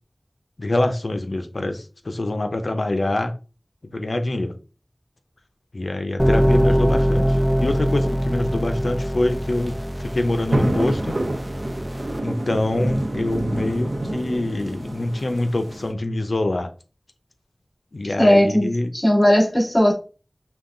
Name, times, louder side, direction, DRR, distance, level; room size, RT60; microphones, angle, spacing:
voice 1, 0.6-3.3 3.9-4.6 5.7-11.3 12.2-16.7 17.9-18.9, left 2 dB, 80° left, 0.6 m, -25 dB
sound 1, 6.2-12.2, equal, 10° right, 0.6 m, -22 dB
sound 2, 9.3-15.9, right 1 dB, 75° right, 0.9 m, -28 dB
voice 2, 18.2-19.9, equal, 35° left, 2.6 m, -17 dB
5.5 x 2.3 x 3.8 m
wide cardioid pair, 50°, 0 cm